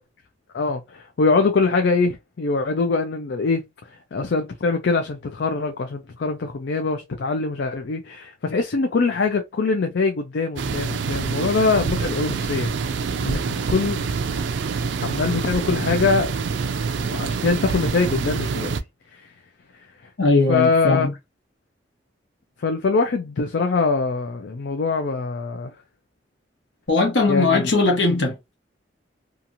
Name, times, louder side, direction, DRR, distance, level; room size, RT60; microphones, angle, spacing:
voice 1, 0.5-3.6 4.1-12.7 13.0-14.0 15.0-16.4 17.0-18.7 19.1-19.3 20.5-21.1 22.6-25.7 27.3-27.7, left 4 dB, 70° left, 0.4 m, -23 dB
sound 1, 10.6-18.8, right 5 dB, 80° right, 0.4 m, -26 dB
voice 2, 20.2-21.1 26.9-28.4, left 3 dB, 85° left, 1.0 m, -19 dB
2.9 x 2.5 x 2.5 m
head